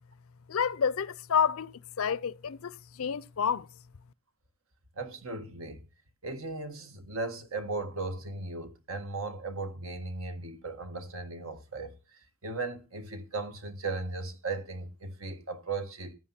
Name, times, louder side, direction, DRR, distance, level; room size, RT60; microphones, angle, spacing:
voice 1, 0.5-3.7, left 7 dB, 80° left, 0.5 m, -29 dB
voice 2, 5.0-5.9 6.2-16.1, right 3 dB, 80° right, 1.7 m, -37 dB
14.0 x 9.3 x 4.3 m
head